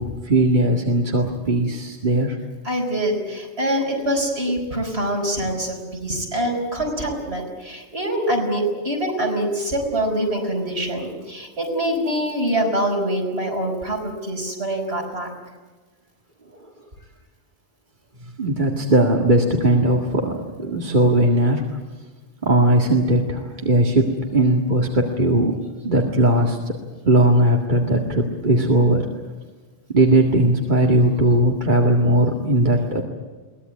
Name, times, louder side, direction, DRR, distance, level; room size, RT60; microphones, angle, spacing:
voice 1, 0.0-2.4 4.9-5.0 16.6-16.7 18.4-21.8 22.4-25.5 25.8-26.8 27.1-29.1 29.9-33.0, right 1 dB, 45° right, 1 dB, 2.2 m, -18 dB
voice 2, 2.6-15.3, right 1 dB, 65° right, 1 dB, 5.7 m, -24 dB
22.5 x 19.0 x 9.5 m, 1.3 s
omnidirectional pair, 1.1 m